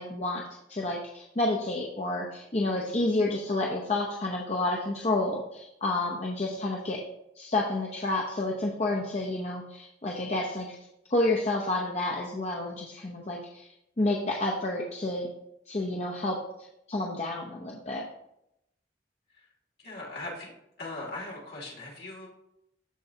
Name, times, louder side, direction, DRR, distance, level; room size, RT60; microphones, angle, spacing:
voice 1, 0.0-7.0 7.4-10.8 11.1-15.3 15.7-16.4 16.9-18.1, left 2 dB, 35° left, -1 dB, 0.8 m, -30 dB
voice 2, 19.8-20.5 20.8-22.3, left 2 dB, 60° left, -3 dB, 2.5 m, -39 dB
13.5 x 4.6 x 2.8 m, 0.81 s
head